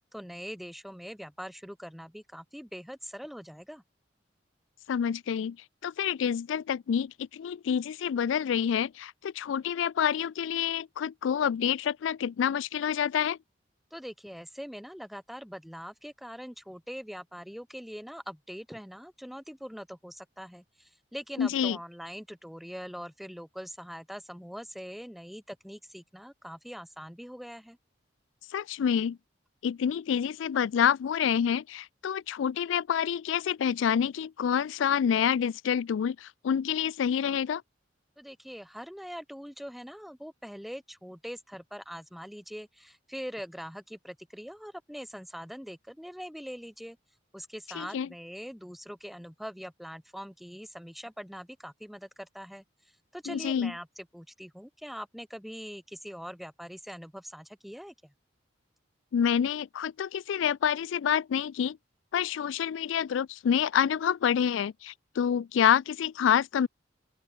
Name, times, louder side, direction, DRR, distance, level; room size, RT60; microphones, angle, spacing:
voice 1, 0.1-3.8 13.9-27.8 38.2-47.0 47.3-52.6 53.1-58.1, equal, ahead, 1.5 m, -43 dB
voice 2, 4.9-5.6 5.8-13.4 21.4-21.8 28.5-29.2 29.6-37.6 47.7-48.1 53.3-53.7 59.1-61.8 62.1-66.7, left 8 dB, 75° left, 0.3 m, -27 dB
open air
head